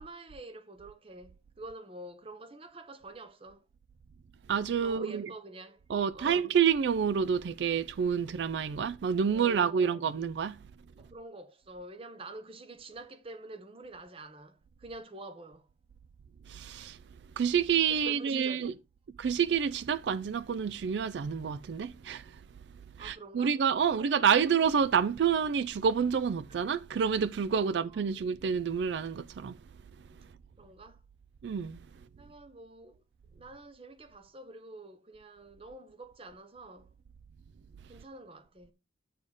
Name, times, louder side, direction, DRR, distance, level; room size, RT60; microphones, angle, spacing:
voice 1, 0.0-3.6 4.8-5.8 6.1-6.4 9.3-10.1 11.0-15.7 17.9-18.7 23.0-23.6 23.8-24.5 27.5-28.1 30.6-31.0 32.2-33.0 33.3-36.9 37.9-38.7, right 2 dB, 30° right, 0.8 m, -47 dB
voice 2, 4.5-5.3 5.9-10.6 16.5-17.0 17.4-18.7 19.2-22.4 23.0-29.6 31.4-31.8, right 7 dB, 75° right, 0.4 m, -28 dB
8.4 x 4.2 x 4.9 m
head